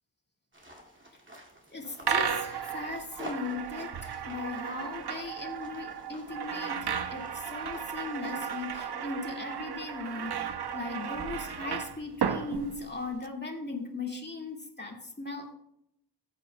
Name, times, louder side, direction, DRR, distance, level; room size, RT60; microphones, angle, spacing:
sound 1, 0.5-8.8, right 1 dB, 30° right, 2.1 m, -49 dB
voice 1, 1.7-15.5, left 3 dB, 25° left, 0 dB, 2.0 m, -38 dB
sound 2, 2.0-13.3, right 7 dB, 75° right, 0.6 m, -35 dB
14.5 x 8.5 x 2.2 m, 0.75 s
wide cardioid pair, 70°, 40 cm